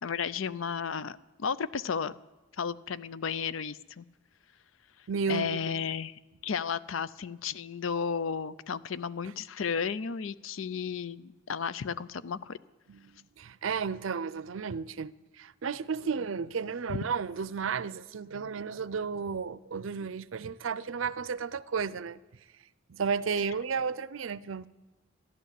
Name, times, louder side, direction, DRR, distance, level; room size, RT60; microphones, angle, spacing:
voice 1, 0.0-2.2 2.6-4.0 5.3-12.6 16.9-17.0, left 6 dB, 75° left, 0.5 m, -33 dB
voice 2, 5.1-5.7 12.9-22.2 22.9-24.7, right 5 dB, 75° right, 0.5 m, -33 dB
14.0 x 11.0 x 8.3 m
head